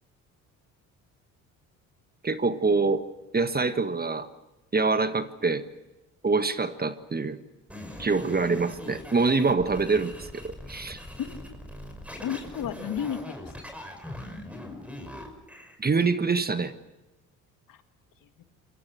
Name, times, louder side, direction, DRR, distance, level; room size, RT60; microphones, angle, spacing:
voice 1, 2.2-3.0 3.3-4.3 4.7-5.6 6.2-7.4 8.0-11.0 15.8-16.7, right 4 dB, 20° right, 11 dB, 1.5 m, -25 dB
sound 1, 7.7-15.8, left 1 dB, 5° right, 5.9 m, -41 dB
voice 2, 12.2-13.5 17.7-17.8 18.4-18.5, left 8 dB, 50° left, 8 dB, 2.2 m, -33 dB
27.0 x 23.0 x 6.4 m, 1.0 s
hypercardioid pair, 55°, 41 cm